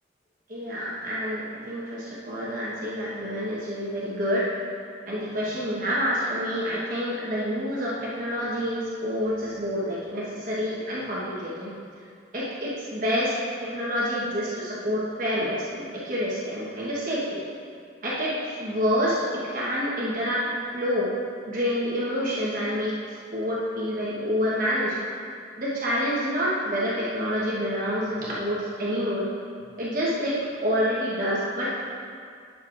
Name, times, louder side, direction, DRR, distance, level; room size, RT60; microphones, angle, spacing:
voice 1, 0.5-4.5 5.1-11.7 12.3-13.4 13.6-17.4 18.0-21.1 21.5-23.0 23.3-25.0 25.6-29.3 29.8-31.9, equal, 45° right, -7 dB, 1.2 m, -28 dB
11.0 x 6.4 x 2.5 m, 2.3 s
head